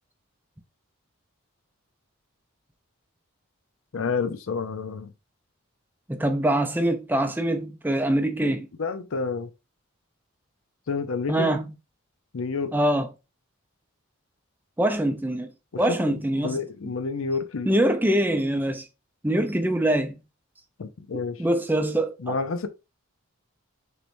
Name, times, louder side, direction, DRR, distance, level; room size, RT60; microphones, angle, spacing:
voice 1, 3.9-5.1 8.8-9.5 10.9-11.5 12.3-12.7 15.7-17.7 20.8-21.4 22.2-22.7, left 4 dB, 70° left, 0.5 m, -29 dB
voice 2, 6.1-8.7 11.3-11.6 12.7-13.1 14.8-15.5 15.8-16.6 17.7-18.9 19.2-20.1 21.1-22.3, right 1 dB, 10° right, 0.5 m, -24 dB
6.5 x 3.1 x 2.6 m
head